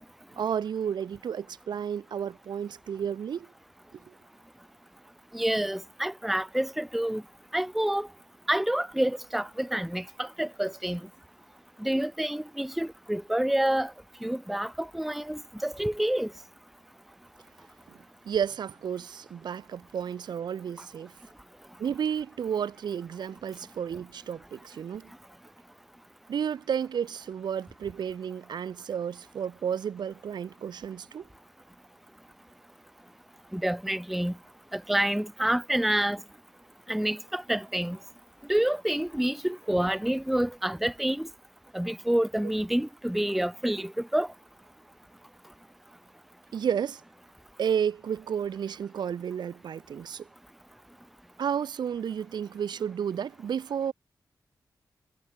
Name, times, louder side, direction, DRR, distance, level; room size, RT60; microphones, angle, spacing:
voice 1, 0.4-3.5 3.9-4.1 17.9-18.0 18.2-21.1 21.8-25.1 26.3-31.3 46.5-47.0 47.6-50.3 51.4-53.9, right 8 dB, 85° right, 1.4 m, -32 dB
voice 2, 5.3-7.2 7.5-8.1 8.5-11.0 11.8-13.9 14.2-16.3 33.5-34.3 34.7-36.2 36.9-38.0 38.5-41.3 41.7-44.3, right 1 dB, ahead, 0.5 m, -28 dB
cardioid pair, 85°, 7 cm